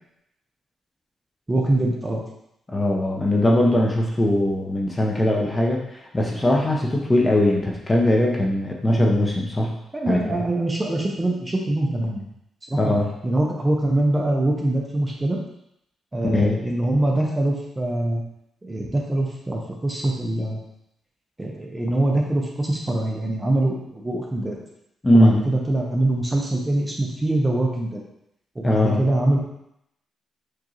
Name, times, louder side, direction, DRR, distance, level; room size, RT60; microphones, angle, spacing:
voice 1, 1.5-2.2 9.9-12.3 12.7-12.9 13.2-15.4 16.1-18.2 18.6-20.6 21.4-24.6 25.1-28.0 28.6-29.4, right 1 dB, 20° right, -1 dB, 0.7 m, -23 dB
voice 2, 2.7-5.8 6.1-9.7 10.1-10.2 12.8-13.1 16.2-16.5 25.0-25.4 28.6-29.0, left 1 dB, 20° left, -2 dB, 0.7 m, -20 dB
4.6 x 2.6 x 3.0 m, 0.79 s
cardioid pair, 90°, 0 cm